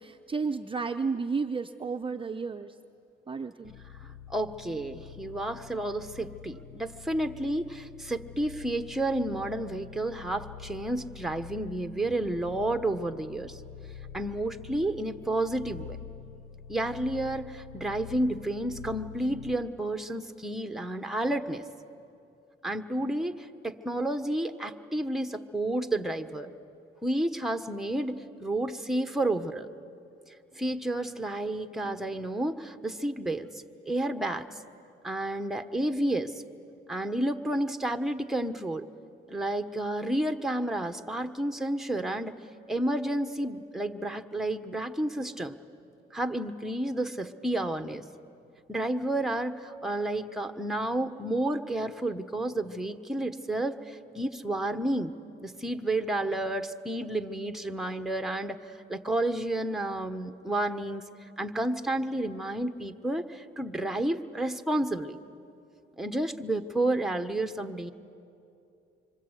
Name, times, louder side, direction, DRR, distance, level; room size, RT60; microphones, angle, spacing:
voice 1, 0.0-2.7 3.3-3.7, right 4 dB, 25° right, 5 dB, 0.7 m, -32 dB
sound 1, 3.6-19.8, left 8 dB, 90° left, 0.6 m, -46 dB
voice 2, 4.0-13.6 14.1-16.0 16.7-21.6 22.6-26.5 27.0-29.7 30.5-33.5 33.9-34.5 35.0-36.3 36.9-38.9 39.3-42.3 42.7-45.6 46.1-48.0 48.7-55.1 55.4-61.0 61.4-65.2 66.0-67.9, right 1 dB, ahead, 7 dB, 1.3 m, -31 dB
26.0 x 26.0 x 8.3 m, 2.6 s
cardioid pair, 90°, 20 cm